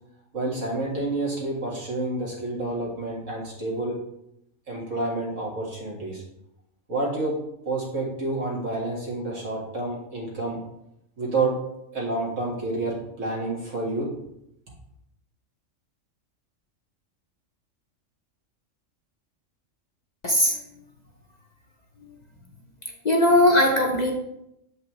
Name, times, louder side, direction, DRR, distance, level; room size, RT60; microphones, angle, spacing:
voice 1, 0.3-4.0 4.7-6.2 6.9-7.4 7.7-10.6 11.2-11.5 11.9-14.1, right 2 dB, 75° right, -3 dB, 2.0 m, -29 dB
voice 2, 20.2-20.6 23.0-24.1, left 1 dB, 40° left, 0 dB, 0.7 m, -19 dB
7.1 x 5.3 x 3.1 m, 0.80 s
omnidirectional pair, 1.3 m